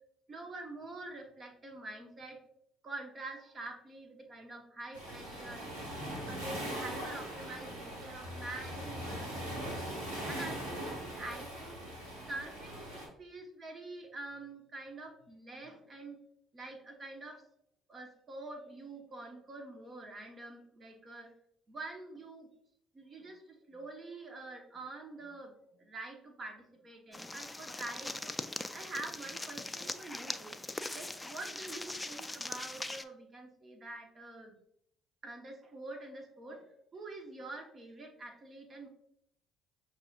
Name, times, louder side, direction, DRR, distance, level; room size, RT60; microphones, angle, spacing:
voice 1, 0.3-2.4 2.8-5.7 6.3-9.8 10.2-11.8 12.3-16.2 16.5-17.4 17.9-21.3 21.7-22.5 22.9-28.3 28.7-30.6 30.9-34.6 35.2-36.6 36.9-38.9, right 2 dB, 40° right, 2 dB, 1.0 m, -46 dB
Waves surf, 4.9-13.1, equal, 85° right, 1.2 m, -41 dB
sound 1, 27.1-33.0, left 2 dB, 15° left, 0.3 m, -41 dB
5.9 x 2.5 x 2.4 m, 0.70 s
hypercardioid pair, 55°, 0 cm